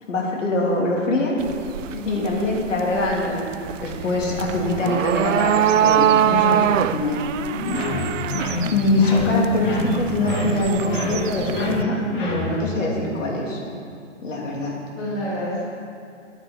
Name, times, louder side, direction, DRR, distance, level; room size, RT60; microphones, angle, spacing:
voice 1, 0.1-1.4 2.1-3.5 3.8-7.3 8.7-13.6 14.2-14.8, left 1 dB, 85° left, -2 dB, 2.9 m, -23 dB
sound 1, 1.4-11.8, right 10 dB, 90° right, 0.5 m, -24 dB
voice 2, 1.9-2.2 7.5-8.1 15.0-15.6, left 1 dB, 5° left, -7 dB, 0.5 m, -30 dB
sound 2, 7.6-12.8, left 2 dB, 45° left, 2.0 m, -27 dB
9.6 x 6.2 x 8.6 m, 2.3 s
hypercardioid pair, 160°, 37 cm